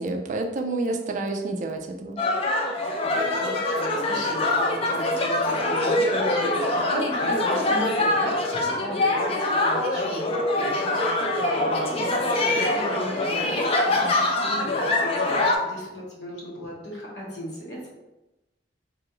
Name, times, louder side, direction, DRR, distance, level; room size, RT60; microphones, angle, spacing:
voice 1, 0.0-2.2, right 2 dB, 45° right, 3 dB, 0.3 m, -29 dB
sound 1, 2.2-15.6, left 2 dB, 30° left, 0.4 m, -24 dB
voice 2, 2.7-3.1 3.4-17.9, equal, 75° left, -5 dB, 1.1 m, -36 dB
3.0 x 2.5 x 2.9 m, 1.0 s
head